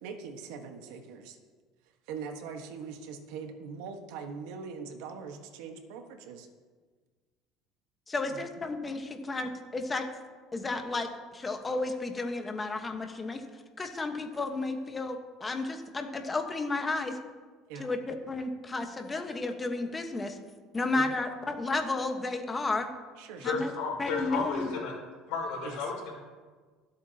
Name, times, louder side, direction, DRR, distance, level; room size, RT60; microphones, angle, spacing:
voice 1, 0.0-1.4 2.1-6.5 8.3-8.4 17.7-17.9 20.9-21.1 23.2-23.6 25.6-25.8, right 5 dB, 85° right, 5 dB, 1.4 m, -42 dB
voice 2, 8.1-10.0 10.5-13.4 13.8-17.2 17.8-20.4 20.7-22.9 23.4-23.7 24.0-24.7, left 3 dB, 20° left, 5 dB, 1.2 m, -32 dB
voice 3, 23.4-24.9 25.3-26.1, left 5 dB, 75° left, -1 dB, 3.7 m, -33 dB
24.0 x 8.3 x 2.9 m, 1.5 s
cardioid pair, 135°, 0 cm